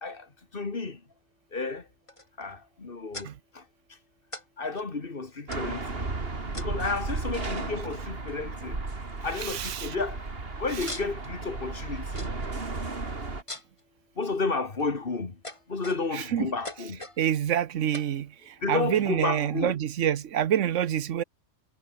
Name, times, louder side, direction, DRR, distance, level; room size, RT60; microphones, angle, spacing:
voice 1, 0.5-1.0 1.5-1.8 2.4-3.3 4.6-6.1 6.5-8.8 9.2-10.2 10.6-12.0 14.2-15.3 15.7-17.0 18.6-19.8, left 3 dB, 50° left, 2.1 m, -31 dB
aluminium clack, 2.1-2.5 3.1-3.3 4.3-4.4 4.7-4.8 5.5-5.9 6.5-6.9 7.9-8.0 8.3-8.7 9.0-9.1 9.6-9.8 10.8-11.4 12.2-12.5 13.5-13.8 14.5-14.9 15.4-16.2 16.6-17.2 17.9-18.1, left 1 dB, 25° left, 3.2 m, -41 dB
sound 1, 5.5-13.4, right 3 dB, 55° right, 2.9 m, -34 dB
voice 2, 9.4-9.9 16.3-16.5 17.2-18.3 18.7-21.2, right 10 dB, 90° right, 1.2 m, -26 dB
omnidirectional pair, 1.2 m